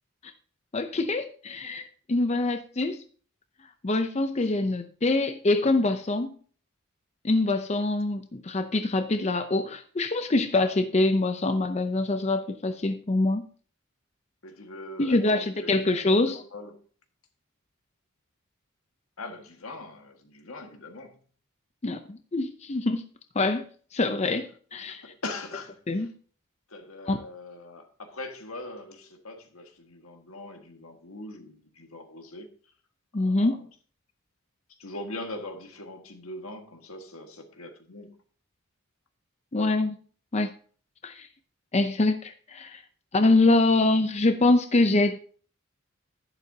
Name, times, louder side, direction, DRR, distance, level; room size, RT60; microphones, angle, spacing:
voice 1, 0.7-3.0 3.8-6.3 7.2-13.5 15.0-16.4 21.8-23.0 23.4-23.6 23.9-25.0 25.9-26.1 27.1-27.2 33.1-33.6 39.5-40.0 40.3-40.5 41.0-41.3 41.7-42.8 43.1-45.2, left 2 dB, 30° left, 0.6 m, -24 dB
voice 2, 14.4-16.8 19.2-21.2 24.9-26.1 26.7-32.5 33.2-33.6 34.8-38.1, left 2 dB, 85° left, 1.7 m, -41 dB
11.0 x 11.0 x 2.8 m
head